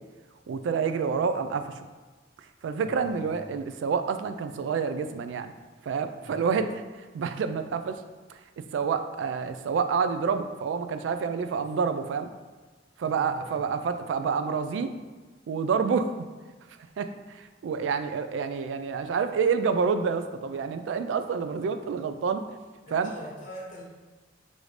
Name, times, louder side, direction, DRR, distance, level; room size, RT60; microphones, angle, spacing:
voice 1, 0.5-1.7 2.6-5.5 5.9-6.8 7.1-8.0 8.7-12.3 13.0-14.9 15.5-16.3 17.0-22.4 22.9-23.1, right 5 dB, 85° right, 10 dB, 0.3 m, -28 dB
voice 2, 2.8-3.5 6.2-6.6 11.5-11.6 13.0-13.6 22.9-23.8, equal, 45° left, -4 dB, 1.1 m, -44 dB
4.9 x 2.6 x 3.1 m, 1.4 s
head